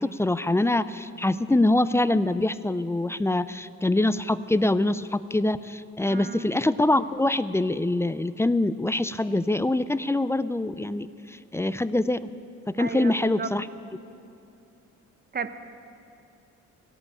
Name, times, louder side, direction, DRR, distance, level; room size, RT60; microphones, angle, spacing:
voice 1, 0.0-12.3 12.7-13.7, left 2 dB, 10° left, 14 dB, 0.4 m, -24 dB
voice 2, 6.1-6.5 12.8-13.5 15.3-15.5, right 5 dB, 30° right, 10 dB, 1.0 m, -33 dB
16.5 x 8.8 x 9.1 m, 2.6 s
cardioid pair, 90°, 30 cm